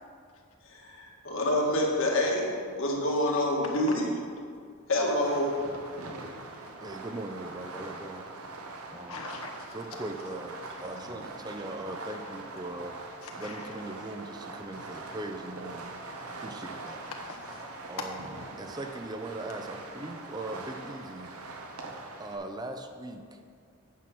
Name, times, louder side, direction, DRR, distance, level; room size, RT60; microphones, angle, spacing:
voice 1, 0.7-4.1 4.9-5.5, left 1 dB, 65° left, -2 dB, 1.8 m, -27 dB
Fireworks, 5.1-22.3, right 2 dB, 90° right, 1.0 m, -43 dB
voice 2, 6.8-8.3 8.9-9.2 9.7-13.0 13.4-16.0 16.4-17.0 17.9-18.2 18.6-21.3 22.2-23.4, right 2 dB, 20° right, 5 dB, 0.5 m, -40 dB
voice 3, 9.1-9.8 10.6-10.7 13.2-13.7 17.1-17.6 18.0-18.1, left 3 dB, 80° left, 1 dB, 1.3 m, -41 dB
9.2 x 6.3 x 6.0 m, 2.2 s
head